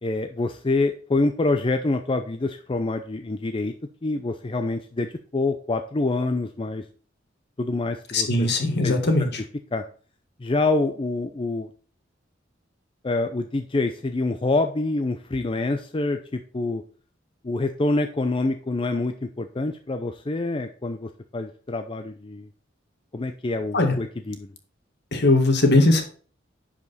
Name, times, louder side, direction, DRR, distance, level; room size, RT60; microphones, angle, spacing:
voice 1, 0.0-3.7 4.0-6.8 7.6-8.5 8.8-8.9 9.7-9.9 10.4-11.7 13.0-16.8 17.4-22.5 23.1-24.5, left 2 dB, 25° left, 7 dB, 0.5 m, -26 dB
voice 2, 8.1-9.4 23.7-24.0 25.1-26.0, left 2 dB, 60° left, 4 dB, 1.9 m, -19 dB
10.5 x 5.1 x 4.1 m, 0.42 s
head